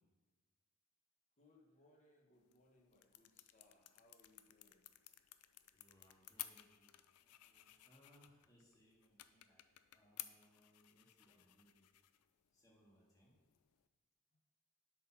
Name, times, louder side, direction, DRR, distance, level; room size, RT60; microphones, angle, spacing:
voice 1, 1.4-4.9, left 1 dB, 30° left, 0 dB, 1.3 m, -70 dB
sound 1, 2.3-13.9, left 15 dB, 85° left, 0.4 m, -57 dB
voice 2, 5.7-9.6 9.9-11.9 12.5-13.4, equal, 15° left, -4 dB, 1.9 m, -70 dB
7.9 x 4.6 x 5.7 m, 1.2 s
head